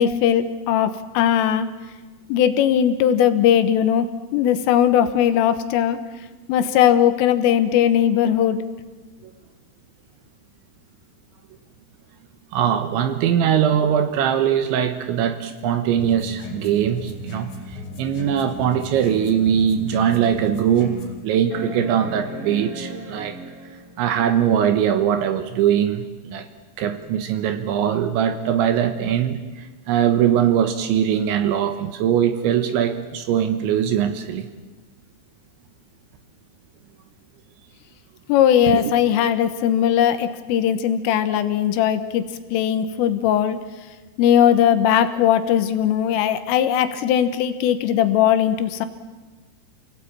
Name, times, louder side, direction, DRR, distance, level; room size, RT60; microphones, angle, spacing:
voice 1, 0.0-1.7 2.3-6.0 6.5-8.6 38.3-43.6 44.2-48.9, left 9 dB, 80° left, 10 dB, 3.7 m, -19 dB
voice 2, 12.5-21.0 21.2-23.4 24.0-26.5 26.8-34.5 38.6-38.9, right 9 dB, 75° right, 8 dB, 3.2 m, -21 dB
sound 1, 16.0-21.2, left 2 dB, 55° left, 6.5 m, -37 dB
sound 2, 21.5-24.0 25.7-25.8, right 1 dB, 20° right, 2.7 m, -35 dB
28.5 x 18.0 x 8.8 m, 1.3 s
omnidirectional pair, 6.0 m